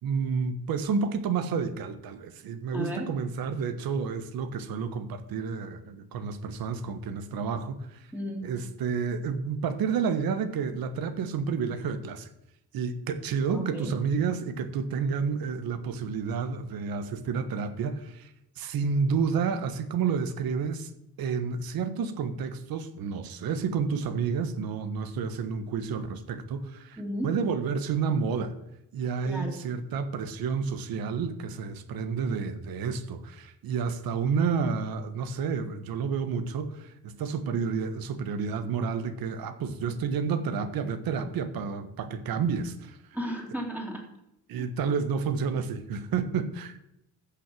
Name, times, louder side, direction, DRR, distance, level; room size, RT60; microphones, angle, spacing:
voice 1, 0.0-8.0 8.4-12.3 12.7-18.3 18.6-20.9 21.2-28.5 28.9-43.0 44.5-46.8, right 5 dB, 80° right, 9 dB, 1.5 m, -30 dB
voice 2, 2.7-3.1 8.1-8.5 13.5-13.9 27.0-27.3 29.2-29.6 43.1-44.0 44.6-44.7, equal, 5° right, -1 dB, 2.7 m, -34 dB
15.0 x 6.1 x 7.7 m, 0.83 s
cardioid pair, 165°, 35 cm